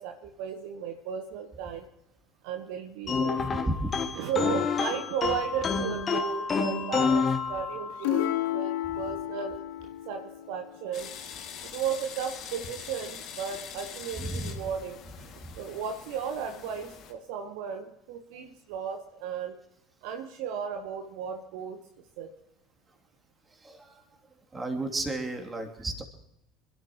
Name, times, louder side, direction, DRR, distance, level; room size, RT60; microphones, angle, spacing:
voice 1, 0.0-1.9 2.4-3.7 4.1-11.1 11.6-15.0 15.6-19.5 20.0-21.8 22.2-22.3, right 7 dB, 60° right, 6 dB, 1.2 m, -35 dB
sound 1, 3.1-8.1, left 5 dB, 30° left, 2.0 m, -28 dB
voice 2, 3.5-3.9 8.9-9.0 14.2-14.6 15.4-15.5 23.5-24.0 24.5-26.0, right 2 dB, 20° right, 3 dB, 3.0 m, -33 dB
sound 2, 8.0-11.7 14.2-14.7, left 12 dB, 65° left, 1.0 m, -33 dB
sound 3, 10.9-17.1, left 7 dB, 50° left, 2.4 m, -43 dB
27.0 x 12.5 x 3.1 m, 0.81 s
figure-of-eight pair, 65°, 0 cm